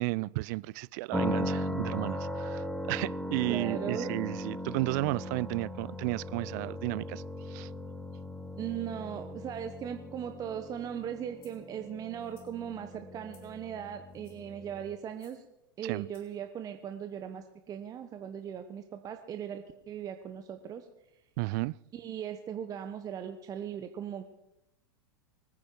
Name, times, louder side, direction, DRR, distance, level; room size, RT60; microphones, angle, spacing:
voice 1, 0.0-7.7 15.8-16.1 21.4-21.7, right 23 dB, 50° right, 0.4 m, -33 dB
sound 1, 1.1-15.0, left 1 dB, ahead, 1.1 m, -38 dB
voice 2, 3.5-4.2 8.6-15.5 15.8-20.9 21.9-24.3, right 9 dB, 30° right, 1.1 m, -39 dB
sound 2, 11.4-11.6 12.2-12.5 13.3-13.6 14.1-14.5 15.1-15.4 16.1-16.4, left 6 dB, 50° left, 4.4 m, -64 dB
24.0 x 9.8 x 4.7 m
hypercardioid pair, 95°, 12 cm